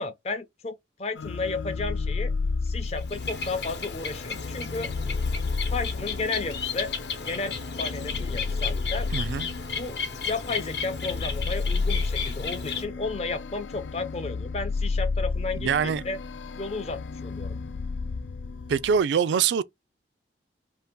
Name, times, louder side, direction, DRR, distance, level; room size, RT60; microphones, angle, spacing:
voice 1, 0.0-2.3 2.6-4.9 5.7-6.9 7.2-9.1 9.8-10.0 10.2-16.2 16.6-17.5, left 3 dB, 35° left, 0.5 m, -33 dB
sound 1, 1.2-19.0, left 4 dB, 90° left, 0.3 m, -32 dB
Bird, 2.8-12.8, left 5 dB, 70° left, 0.8 m, -34 dB
voice 2, 9.1-9.5 15.6-16.0 18.7-19.6, right 7 dB, 80° right, 0.3 m, -24 dB
2.7 x 2.4 x 3.5 m
head